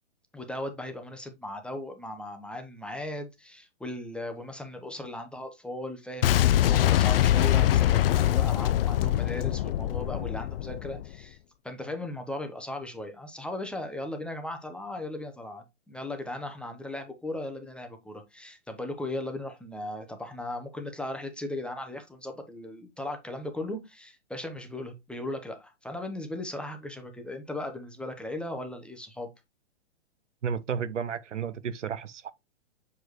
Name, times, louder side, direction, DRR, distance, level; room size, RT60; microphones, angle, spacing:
voice 1, 0.3-11.4 11.6-29.3, left 1 dB, 5° left, 0.8 m, -37 dB
Boom, 6.2-11.1, left 12 dB, 55° left, 0.5 m, -23 dB
voice 2, 30.4-32.3, right 7 dB, 85° right, 0.9 m, -32 dB
6.9 x 4.5 x 3.1 m
hypercardioid pair, 130°, 35 cm